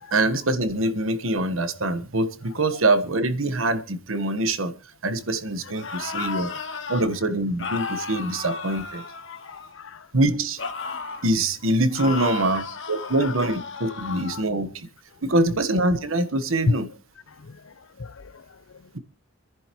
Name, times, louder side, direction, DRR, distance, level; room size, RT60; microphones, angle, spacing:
voice 1, 0.1-4.7 5.0-6.5 6.9-9.0 10.1-10.6 11.2-14.9 15.2-16.9, right 2 dB, 90° right, 1.4 m, -24 dB
voice 2, 5.6-6.5 9.3-10.1 11.1-11.2 13.0-13.3 14.0-14.4 16.7-16.8 17.3-18.9, left 3 dB, 80° left, 0.6 m, -33 dB
sound 1, 5.7-7.1 7.6-9.9 10.6-11.3 11.9-14.4, left 4 dB, 65° left, 1.9 m, -34 dB
27.5 x 10.5 x 3.1 m
head